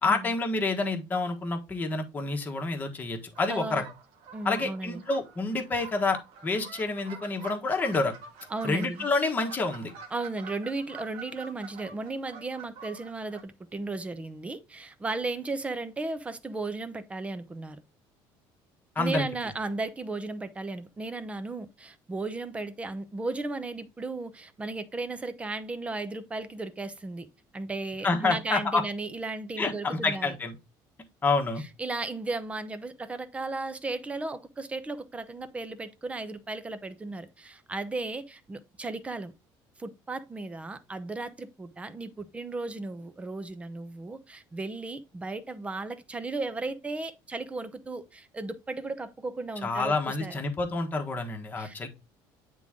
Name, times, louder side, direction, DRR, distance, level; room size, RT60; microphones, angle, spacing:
voice 1, 0.0-3.8 4.4-8.1 8.6-9.9 18.9-19.2 28.0-28.8 29.6-30.5 31.2-31.6 49.6-51.9, left 3 dB, 20° left, 1.3 m, -28 dB
sound 1, 3.4-13.4, right 5 dB, 85° right, 1.5 m, -47 dB
voice 2, 3.5-3.8 4.3-5.0 8.5-9.1 10.1-17.8 19.0-27.3 27.5-30.3 31.8-39.3 39.8-50.4 51.6-51.9, right 3 dB, 15° right, 0.7 m, -35 dB
9.1 x 3.8 x 3.6 m
cardioid pair, 150°, 9 cm